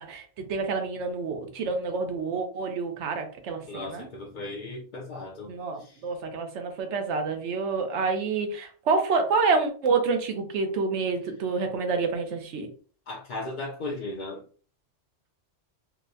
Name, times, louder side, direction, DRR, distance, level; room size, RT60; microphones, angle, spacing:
voice 1, 0.0-4.1 5.5-12.7, right 4 dB, 70° right, 1.0 m, -28 dB
voice 2, 3.7-5.5 5.8-6.0 13.1-14.4, left 2 dB, 55° left, 0.6 m, -36 dB
4.3 x 2.1 x 2.7 m
omnidirectional pair, 1.3 m